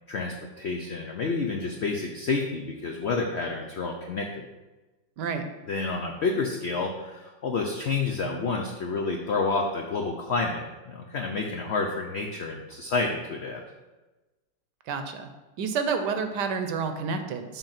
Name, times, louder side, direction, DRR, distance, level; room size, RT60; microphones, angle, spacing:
voice 1, 0.1-4.5 5.7-13.6, left 4 dB, 85° left, 1 dB, 0.5 m, -29 dB
voice 2, 14.9-15.3 15.6-17.6, right 5 dB, 70° right, 7 dB, 1.2 m, -29 dB
7.1 x 3.7 x 5.8 m, 1.2 s
omnidirectional pair, 2.0 m